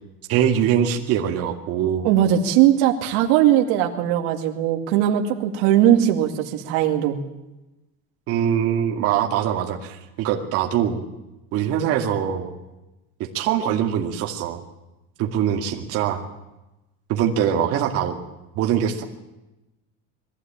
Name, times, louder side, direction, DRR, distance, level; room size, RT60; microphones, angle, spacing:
voice 1, 0.3-2.1 8.3-11.0 11.5-12.5 13.2-14.6 15.2-16.2 17.1-18.2 18.6-19.0, right 9 dB, 50° right, 2 dB, 2.3 m, -23 dB
voice 2, 2.0-7.2, right 11 dB, 85° right, 4 dB, 2.3 m, -19 dB
22.0 x 15.0 x 8.9 m, 0.98 s
cardioid pair, 170°, 31 cm